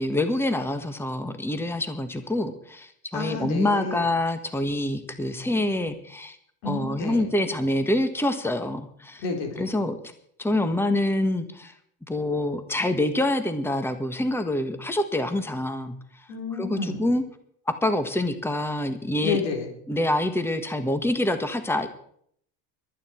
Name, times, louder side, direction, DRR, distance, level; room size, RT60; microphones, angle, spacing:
voice 1, 0.0-6.4 6.6-9.2 9.5-10.1 10.4-11.7 12.1-16.0 16.6-17.2 17.8-19.4 19.9-21.9, left 1 dB, 5° left, 9 dB, 1.5 m, -26 dB
voice 2, 3.1-4.1 6.6-7.2 9.2-9.7 16.3-17.0 19.2-19.7, left 4 dB, 85° left, 3 dB, 4.2 m, -30 dB
22.5 x 9.4 x 4.5 m, 0.66 s
supercardioid pair, 90°, 49 cm